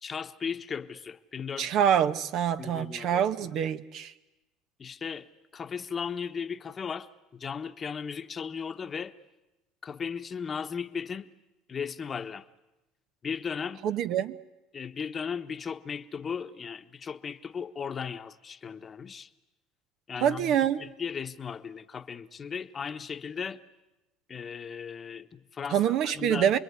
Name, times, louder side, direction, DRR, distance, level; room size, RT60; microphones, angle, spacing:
voice 1, 0.0-1.7 2.6-3.6 4.8-9.2 9.8-11.3 11.7-12.5 13.2-13.8 14.7-19.3 20.1-23.6 24.3-26.5, left 6 dB, 30° left, 1.1 m, -36 dB
voice 2, 1.6-4.1 13.8-14.4 20.2-20.8 25.7-26.6, right 9 dB, 60° right, 1.1 m, -26 dB
28.5 x 21.5 x 9.7 m
supercardioid pair, 110°, 0 cm